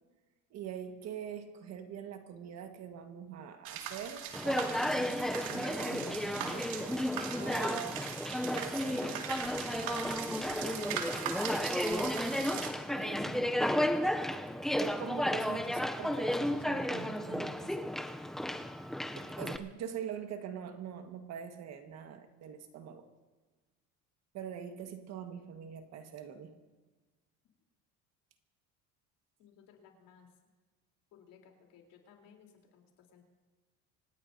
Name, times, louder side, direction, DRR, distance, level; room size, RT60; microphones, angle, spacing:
voice 1, 0.5-8.1 8.4-11.7 12.9-13.8 14.7-17.9 19.2-23.1 24.3-26.5, right 8 dB, 50° right, 6 dB, 1.6 m, -44 dB
sound 1, 3.6-12.7, right 8 dB, 80° right, 2.3 m, -41 dB
Conversation, 4.3-19.6, left 1 dB, ahead, 0.5 m, -33 dB
voice 2, 29.4-30.3 31.1-33.2, left 7 dB, 70° left, 2 dB, 3.6 m, -60 dB
26.0 x 18.5 x 2.7 m, 1.3 s
cardioid pair, 155°, 34 cm